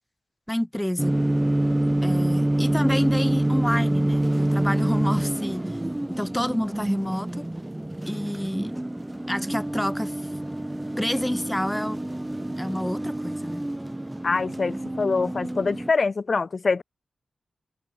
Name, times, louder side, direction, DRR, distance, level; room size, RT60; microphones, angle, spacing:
voice 1, 0.5-1.2 2.0-5.7 6.1-7.5 8.1-8.7 9.3-10.2 11.0-12.0 12.6-13.7, equal, 5° left, 5.7 m, -28 dB
sound 1, 1.0-15.9, right 1 dB, 15° right, 7.1 m, -26 dB
voice 2, 14.2-16.8, left 4 dB, 55° left, 7.8 m, -24 dB
cardioid pair, 55°, 0 cm